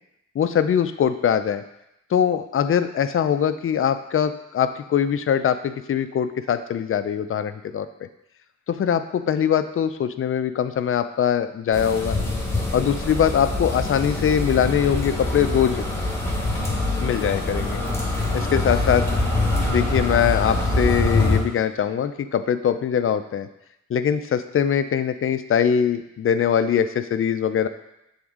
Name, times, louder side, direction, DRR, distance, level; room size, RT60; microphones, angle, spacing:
voice 1, 0.4-1.6 2.1-7.9 8.7-12.2 12.7-15.9 17.0-17.8 18.3-19.0 19.7-23.5 23.9-27.7, left 8 dB, 45° left, 10 dB, 0.4 m, -22 dB
sound 1, 11.7-21.4, left 2 dB, 10° left, 1.3 m, -24 dB
7.8 x 3.5 x 3.6 m, 0.84 s
wide cardioid pair, 120°, 30 cm